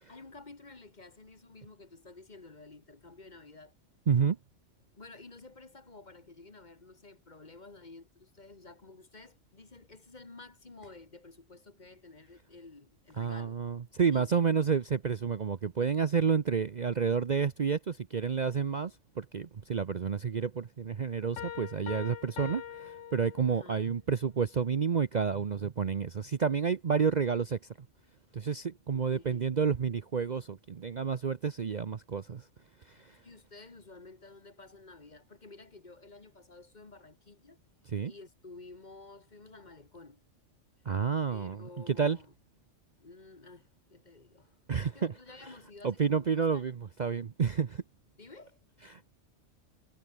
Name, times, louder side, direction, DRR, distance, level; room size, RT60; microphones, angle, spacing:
voice 1, 0.1-3.7 5.0-13.6 14.1-14.4 23.5-23.9 28.9-29.5 33.2-37.6 38.0-40.2 41.3-42.3 43.0-44.6 44.9-46.7 48.2-48.6, left 3 dB, 35° left, 1.9 m, -52 dB
voice 2, 4.1-4.4 13.2-27.6 28.3-32.5 32.9-33.2 37.9-38.1 40.8-42.2 44.7-45.1 45.8-47.8 48.9-49.1, right 6 dB, 40° right, 0.7 m, -30 dB
Piano, 21.4-23.9, left 9 dB, 75° left, 1.3 m, -43 dB
omnidirectional pair, 1.3 m